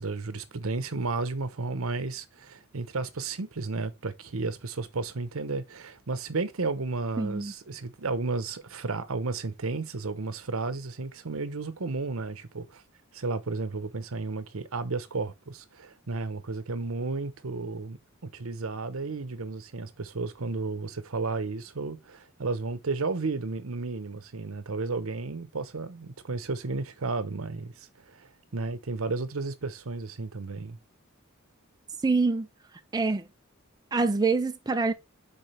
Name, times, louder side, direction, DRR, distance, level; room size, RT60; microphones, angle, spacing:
voice 1, 0.0-12.8 13.1-30.8, right 3 dB, 75° right, 0.9 m, -33 dB
voice 2, 7.2-7.5 32.0-32.5 32.9-33.3 33.9-34.9, right 3 dB, 20° right, 0.4 m, -25 dB
9.7 x 3.9 x 3.3 m
head